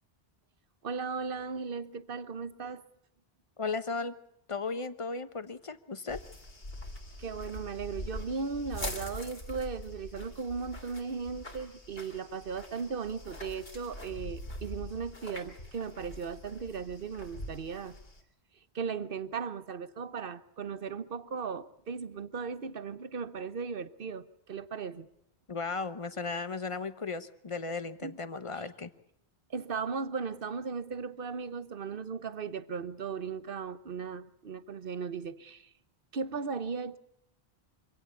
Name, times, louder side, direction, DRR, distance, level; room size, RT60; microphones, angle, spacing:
voice 1, 0.8-2.8 7.2-18.0 18.7-25.1 28.0-28.2 28.5-28.6 29.5-35.7 36.1-37.0, right 5 dB, 60° right, 1.2 m, -37 dB
voice 2, 3.6-4.1 4.5-6.2 25.5-28.9, left 4 dB, 30° left, 1.1 m, -35 dB
sound 1, 6.1-18.2, left 1 dB, 65° left, 3.4 m, -43 dB
25.5 x 17.0 x 8.4 m
omnidirectional pair, 1.1 m